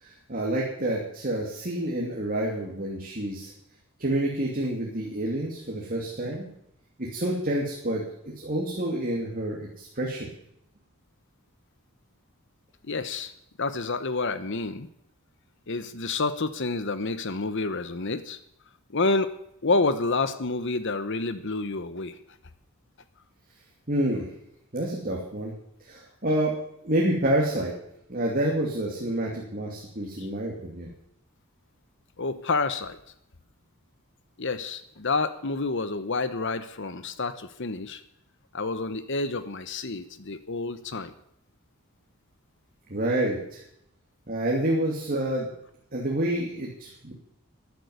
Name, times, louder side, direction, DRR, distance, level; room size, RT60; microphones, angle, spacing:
voice 1, 0.0-3.5 4.0-6.5 7.0-10.3 23.9-24.3 24.7-25.5 25.8-26.5 26.8-27.7 28.1-30.9 42.9-43.6 44.3-45.5 45.9-47.1, right 1 dB, 40° right, -2 dB, 2.7 m, -28 dB
voice 2, 12.8-13.3 13.6-14.9 15.7-18.4 18.9-19.3 19.6-22.2 30.2-30.3 32.2-33.0 34.4-38.0 38.5-41.1, left 3 dB, 55° left, 12 dB, 1.0 m, -29 dB
13.5 x 11.0 x 9.5 m, 0.76 s
head